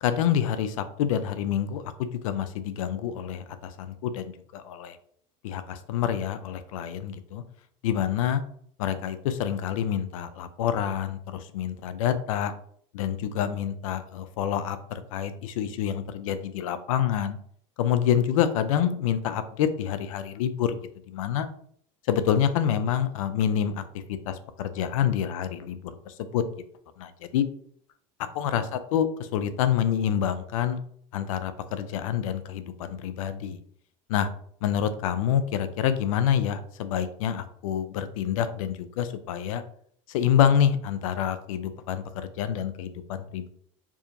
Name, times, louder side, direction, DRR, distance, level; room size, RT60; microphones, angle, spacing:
voice 1, 0.0-4.2 4.5-5.0 5.4-7.4 7.8-8.4 8.8-12.5 12.9-17.4 17.8-20.8 21.1-21.5 22.1-23.8 24.3-26.4 27.0-27.4 28.2-30.8 31.1-33.6 34.1-34.3 34.6-39.6 40.1-43.5, left 9 dB, 85° left, 11 dB, 0.5 m, -27 dB
4.7 x 2.8 x 2.5 m, 0.63 s
supercardioid pair, 140°, 17 cm